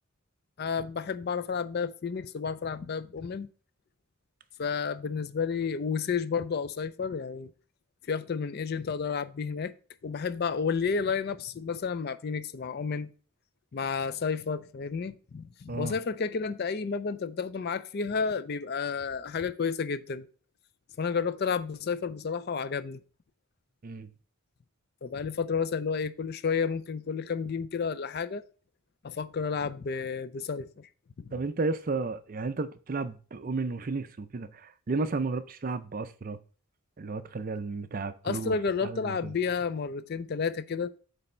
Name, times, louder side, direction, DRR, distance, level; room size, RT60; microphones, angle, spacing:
voice 1, 0.6-3.5 4.6-7.5 8.1-9.7 10.0-13.1 13.7-20.3 21.0-23.0 25.0-28.4 29.0-30.9 31.2-31.3 38.2-40.9, left 5 dB, 45° left, 0.4 m, -31 dB
voice 2, 31.3-36.4 37.0-38.5 38.8-39.1, right 3 dB, 40° right, 0.4 m, -33 dB
8.0 x 3.4 x 4.3 m
head